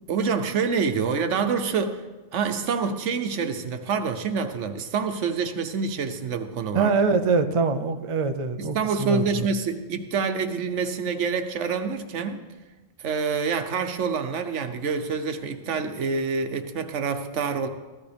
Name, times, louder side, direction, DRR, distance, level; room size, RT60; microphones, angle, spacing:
voice 1, 0.1-2.0 2.3-6.9 8.7-12.4 13.0-17.7, right 5 dB, 90° right, 7 dB, 1.2 m, -27 dB
voice 2, 6.7-9.5, right 4 dB, 35° right, 8 dB, 0.5 m, -24 dB
15.0 x 12.5 x 3.4 m, 1.2 s
omnidirectional pair, 1.2 m